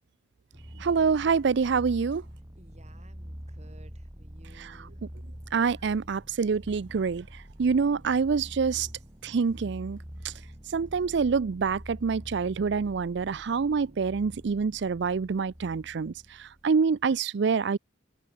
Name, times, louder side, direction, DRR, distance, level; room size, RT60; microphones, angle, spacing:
sound 1, 0.5-17.2, equal, 25° right, 3.0 m, -45 dB
voice 1, 0.8-2.2 4.6-4.9 5.5-7.3 7.6-8.9 9.2-10.0 10.2-10.3 10.7-17.8, right 5 dB, 70° right, 0.5 m, -26 dB
voice 2, 2.5-5.0 5.8-5.9, right 1 dB, 40° right, 5.2 m, -56 dB
open air
head